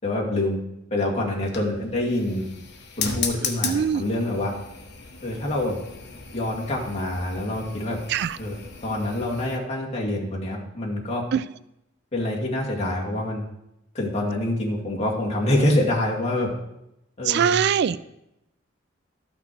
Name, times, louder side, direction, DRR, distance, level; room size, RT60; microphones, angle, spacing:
voice 1, 0.0-0.6 0.9-2.4 3.0-4.5 5.2-5.8 6.3-8.0 8.4-11.2 12.1-13.5 13.9-16.5 17.2-17.6, left 1 dB, 35° left, -2 dB, 2.2 m, -26 dB
sound 1, 1.2-9.6, left 5 dB, 60° left, 1.2 m, -36 dB
voice 2, 3.6-4.0 8.1-8.4 11.3-11.4 17.3-18.0, right 8 dB, 60° right, 16 dB, 0.3 m, -22 dB
13.0 x 5.9 x 4.6 m, 0.85 s
head